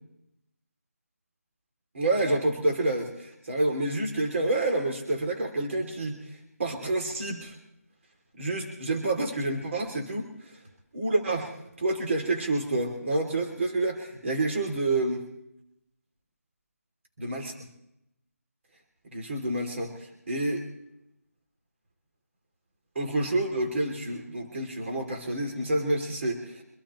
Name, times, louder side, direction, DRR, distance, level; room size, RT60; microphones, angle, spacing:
voice 1, 1.9-7.6 8.3-10.6 10.9-11.5 11.8-15.2 17.2-17.5 19.1-20.7 22.9-26.6, right 2 dB, 50° right, 1 dB, 2.9 m, -28 dB
25.5 x 13.0 x 3.1 m, 0.83 s
figure-of-eight pair, 160°, 8 cm